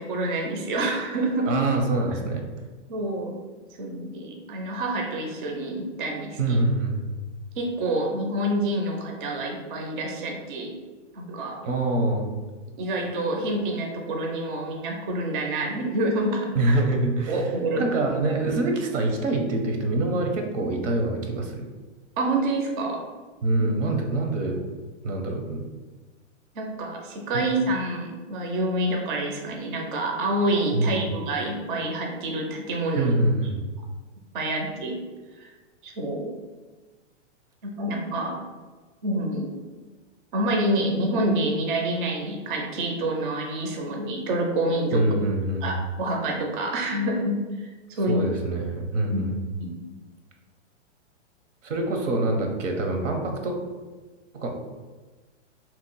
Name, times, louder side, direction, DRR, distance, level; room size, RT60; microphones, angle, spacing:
voice 1, 0.0-1.5 2.9-3.4 3.8-6.6 7.6-10.7 11.1-11.6 12.8-16.8 17.3-18.0 22.2-23.1 26.6-33.2 34.3-35.0 35.4-35.5 35.8-36.3 37.6-38.4 39.0-39.5 40.3-45.1 45.6-47.7 48.0-48.2 49.1-49.2 49.6-49.8, right 1 dB, 45° right, 1 dB, 0.4 m, -27 dB
voice 2, 1.5-2.4 6.4-7.2 11.6-12.3 16.5-17.4 17.7-21.7 23.4-24.6 25.0-25.6 27.3-27.4 30.7-30.9 33.0-33.6 44.9-45.7 48.1-49.3 51.6-53.6 54.3-54.5, right 2 dB, 80° right, 3 dB, 0.8 m, -25 dB
2.8 x 2.1 x 3.9 m, 1.3 s
hypercardioid pair, 170°, 37 cm